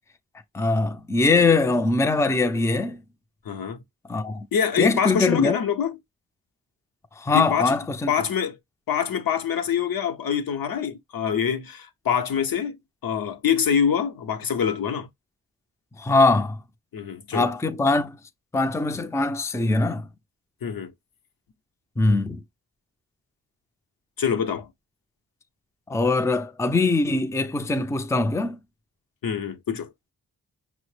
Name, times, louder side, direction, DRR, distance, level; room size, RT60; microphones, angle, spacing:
voice 1, 0.5-3.0 4.1-4.5 4.8-5.6 7.2-8.1 16.0-16.6 17.3-18.2 18.5-20.1 22.0-22.4 25.9-28.6, left 3 dB, 10° left, 0.5 m, -22 dB
voice 2, 3.5-3.8 4.5-5.9 7.3-7.7 8.1-8.6 8.9-12.8 13.0-15.1 16.9-17.5 20.6-20.9 24.2-24.7 29.2-29.9, left 7 dB, 65° left, 0.7 m, -25 dB
5.6 x 2.1 x 3.1 m
cardioid pair, 50°, 38 cm